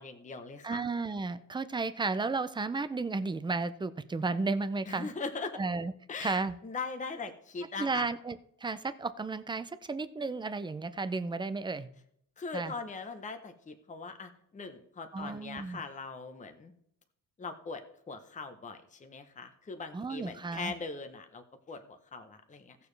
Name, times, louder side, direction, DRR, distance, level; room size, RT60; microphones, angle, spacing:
voice 1, 0.0-0.8 4.9-5.6 6.1-8.1 12.4-16.7 17.4-22.8, left 4 dB, 20° left, 7 dB, 0.8 m, -41 dB
voice 2, 0.6-5.1 5.5-5.9 6.2-6.6 7.8-11.9 12.5-12.7 15.1-15.8 19.9-20.7, right 3 dB, 15° right, 13 dB, 0.3 m, -33 dB
17.0 x 6.9 x 3.2 m, 0.70 s
wide cardioid pair, 180°, 35 cm